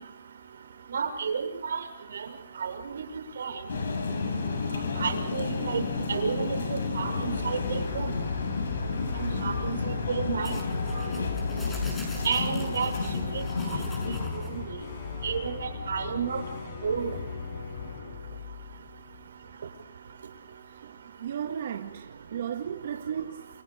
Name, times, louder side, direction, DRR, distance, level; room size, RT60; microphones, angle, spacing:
voice 1, 0.9-1.8 2.6-2.7 3.4-3.5 5.0-5.8 6.1-8.1 9.2-9.8 10.1-10.6 12.2-12.9 14.5-14.6 15.2-16.4 16.8-17.1, right 6 dB, 70° right, 6.3 m, -30 dB
sound 1, 3.7-14.3, left 4 dB, 75° left, 7.5 m, -31 dB
sound 2, 5.9-19.8, left 5 dB, 50° left, 6.9 m, -39 dB
sound 3, 10.4-14.6, left 1 dB, 10° left, 6.9 m, -45 dB
voice 2, 20.7-23.5, right 8 dB, 55° right, 2.0 m, -35 dB
29.5 x 29.0 x 5.3 m
hypercardioid pair, 160°, 0 cm